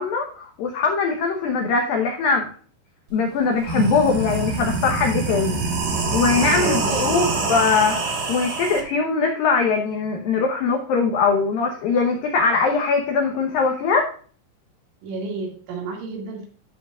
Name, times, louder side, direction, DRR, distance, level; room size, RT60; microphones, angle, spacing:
voice 1, 0.0-2.5 3.1-5.6 6.1-14.1, left 4 dB, 85° left, 2 dB, 2.0 m, -21 dB
sound 1, 3.1-3.2 3.5-8.8, right 4 dB, 60° right, 1.9 m, -25 dB
voice 2, 6.4-7.3 15.0-16.5, right 3 dB, 75° right, -1 dB, 4.8 m, -30 dB
13.0 x 7.0 x 2.5 m, 0.42 s
omnidirectional pair, 5.7 m